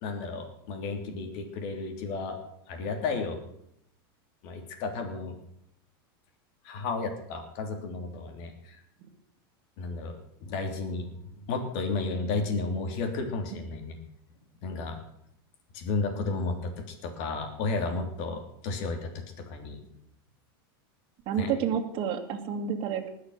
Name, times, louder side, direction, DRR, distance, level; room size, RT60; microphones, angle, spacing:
voice 1, 0.0-2.4 2.7-3.4 4.4-5.3 6.6-8.8 9.8-10.2 10.4-14.0 14.6-15.0 15.7-19.8 21.4-21.5, left 3 dB, 55° left, 5 dB, 3.2 m, -33 dB
voice 2, 21.3-23.1, right 8 dB, 45° right, 4 dB, 2.2 m, -29 dB
20.0 x 6.7 x 6.6 m, 0.76 s
supercardioid pair, 130°, 13 cm